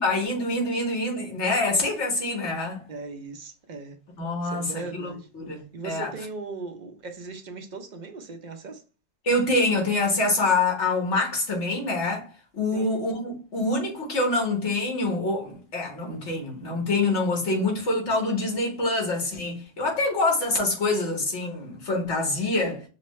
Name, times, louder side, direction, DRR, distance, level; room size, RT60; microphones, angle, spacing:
voice 1, 0.0-2.8 4.2-6.1 9.2-12.3 12.5-22.8, left 2 dB, 75° left, 1.7 m, -26 dB
voice 2, 2.9-4.0 4.4-5.3 5.7-8.8 12.7-13.0, right 3 dB, 45° right, 0.7 m, -38 dB
5.9 x 2.1 x 3.1 m
omnidirectional pair, 1.2 m